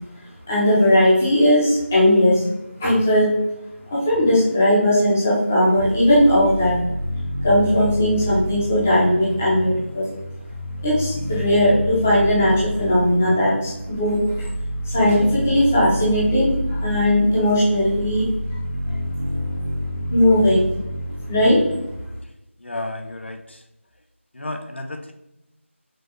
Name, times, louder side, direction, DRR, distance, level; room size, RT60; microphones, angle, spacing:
voice 1, 0.5-2.4 2.8-3.3 3.9-6.8 7.4-10.1 10.8-14.5 14.9-18.3 20.1-20.6 21.3-21.6, left 1 dB, 10° left, -9 dB, 0.6 m, -18 dB
sound 1, 5.8-21.9, equal, 85° right, 1.1 m, -28 dB
voice 2, 22.6-23.6 24.3-25.1, left 2 dB, 55° left, 6 dB, 0.4 m, -32 dB
5.1 x 2.3 x 3.0 m, 0.91 s
figure-of-eight pair, 175°, 7 cm